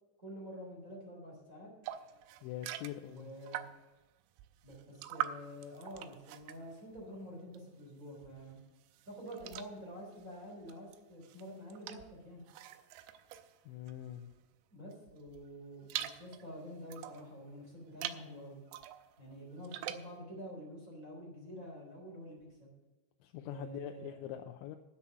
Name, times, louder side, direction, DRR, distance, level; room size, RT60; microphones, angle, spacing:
voice 1, 0.2-1.7 3.1-3.7 4.6-8.6 9.1-12.4 14.7-18.6 19.2-22.7 23.4-24.1, equal, 20° right, -2 dB, 3.4 m, -48 dB
sound 1, 1.8-4.0 4.4-7.8 8.1-14.4 14.9-17.3 17.8-18.3 18.7-20.2, right 12 dB, 90° right, 2.5 m, -45 dB
voice 2, 2.4-3.3 13.7-14.3 23.2-24.8, left 12 dB, 85° left, 5 dB, 3.0 m, -43 dB
10.0 x 8.3 x 7.3 m, 1.1 s
omnidirectional pair, 5.6 m